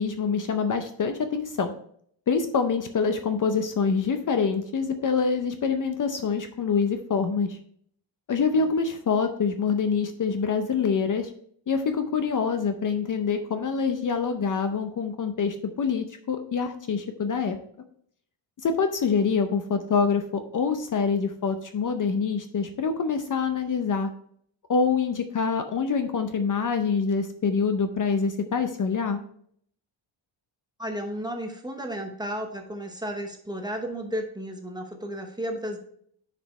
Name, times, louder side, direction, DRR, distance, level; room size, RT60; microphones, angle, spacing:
voice 1, 0.0-1.7 2.3-7.6 8.3-11.3 11.7-17.6 18.6-24.1 24.7-29.2, left 5 dB, 40° left, 7 dB, 0.6 m, -25 dB
voice 2, 30.8-35.8, equal, 10° right, 3 dB, 0.9 m, -33 dB
9.7 x 5.1 x 3.2 m, 0.63 s
wide cardioid pair, 160°, 47 cm